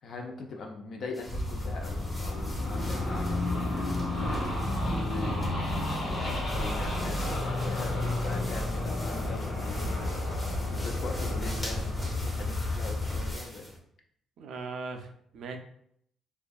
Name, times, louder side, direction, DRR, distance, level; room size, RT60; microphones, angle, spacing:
voice 1, 0.0-3.6 4.2-5.7 6.2-7.2 7.6-10.0 10.7-13.7, left 3 dB, 65° left, 2 dB, 0.4 m, -42 dB
sound 1, 1.1-13.8, equal, 15° left, 0.6 m, -45 dB
sound 2, 1.3-13.3, left 1 dB, 85° left, 1.1 m, -31 dB
voice 2, 14.4-15.6, right 4 dB, 75° right, 5 dB, 0.3 m, -40 dB
2.5 x 2.3 x 2.2 m, 0.69 s
cardioid pair, 90°, 0 cm